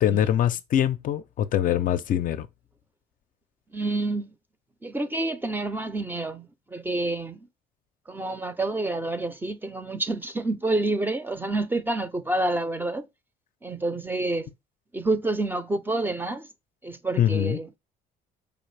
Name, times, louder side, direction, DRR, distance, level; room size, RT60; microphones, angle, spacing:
voice 1, 0.0-2.5 17.2-17.6, left 10 dB, 55° left, 0.4 m, -23 dB
voice 2, 3.7-4.3 4.8-7.4 8.1-13.1 13.6-14.5 14.9-16.5 16.8-17.8, right 2 dB, 10° right, 0.5 m, -28 dB
5.0 x 2.5 x 3.2 m
cardioid pair, 110°, 17 cm